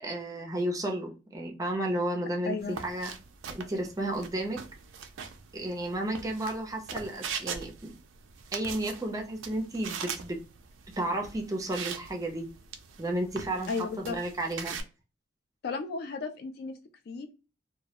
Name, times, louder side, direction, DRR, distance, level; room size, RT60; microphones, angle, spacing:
voice 1, 0.0-3.1 3.5-4.6 5.5-7.9 8.5-10.4 11.0-12.5 13.0-13.7 14.0-14.8, right 1 dB, 20° right, 2 dB, 0.4 m, -32 dB
voice 2, 2.5-2.8 13.7-14.2 15.6-16.8 17.1-17.3, left 4 dB, 55° left, 8 dB, 0.3 m, -34 dB
sound 1, 2.6-14.8, right 6 dB, 90° right, 0.4 m, -42 dB
2.2 x 2.0 x 2.7 m, 0.32 s
head